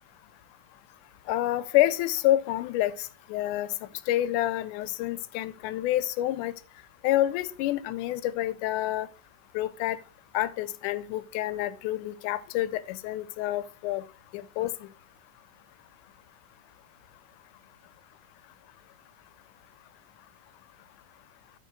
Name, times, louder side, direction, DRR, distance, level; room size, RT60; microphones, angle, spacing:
voice 1, 1.3-3.7 4.1-6.5 7.0-9.1 9.5-10.0 10.3-14.0 14.3-14.7, left 14 dB, 80° left, 2.1 m, -28 dB
12.0 x 4.1 x 4.5 m
omnidirectional pair, 3.6 m